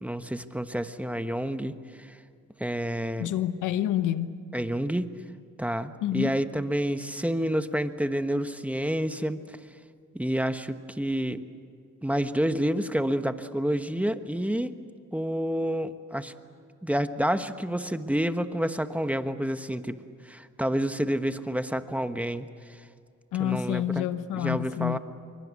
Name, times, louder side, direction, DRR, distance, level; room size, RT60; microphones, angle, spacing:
voice 1, 0.0-2.2 2.6-3.4 4.5-5.1 5.6-9.6 10.1-11.4 12.0-14.7 15.1-16.3 16.8-20.0 20.2-22.9 23.4-25.0, equal, 5° right, 1.2 m, -29 dB
voice 2, 3.2-4.4 6.0-6.4 23.3-25.0, left 11 dB, 90° left, 1.1 m, -28 dB
26.5 x 24.0 x 8.4 m
cardioid pair, 90°, 30 cm